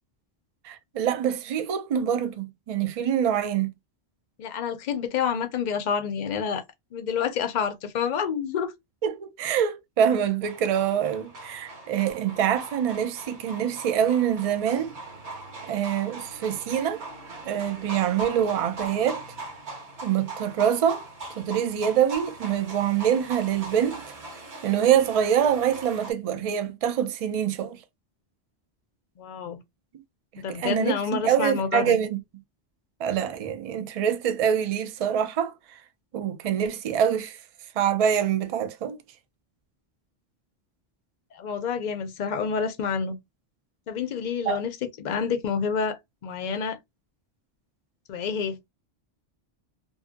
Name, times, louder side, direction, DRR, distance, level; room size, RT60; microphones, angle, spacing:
voice 1, 0.6-3.7 9.0-14.9 15.6-17.0 17.5-19.2 20.0-21.0 21.4-24.0 24.6-27.8 30.5-32.2 33.0-35.5 36.1-37.4 37.8-39.0 44.5-44.6, right 9 dB, 55° right, 0.4 m, -25 dB
voice 2, 4.4-6.6 6.9-8.7 29.2-29.6 30.4-32.0 41.3-43.2 43.9-46.0 46.2-46.8 48.1-48.6, left 6 dB, 55° left, 0.6 m, -28 dB
sound 1, 10.4-26.1, right 2 dB, 80° right, 1.4 m, -40 dB
2.7 x 2.5 x 2.5 m
omnidirectional pair, 1.1 m